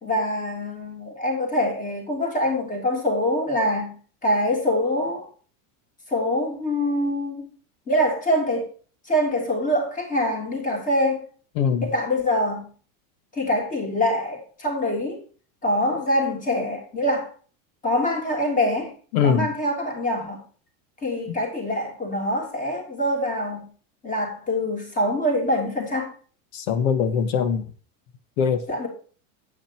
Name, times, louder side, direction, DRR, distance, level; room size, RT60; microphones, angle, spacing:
voice 1, 0.0-5.3 6.1-7.5 7.9-8.7 9.0-11.2 11.8-12.7 13.3-15.2 15.6-17.3 17.8-18.9 19.2-20.4 21.0-23.7 24.0-26.1 28.7-28.9, left 1 dB, 20° left, 3.1 m, -24 dB
voice 2, 11.6-11.9 19.1-19.5 21.3-21.4 26.5-27.6 28.4-28.6, left 7 dB, 70° left, 1.6 m, -22 dB
9.1 x 8.6 x 4.5 m
supercardioid pair, 160°, 42 cm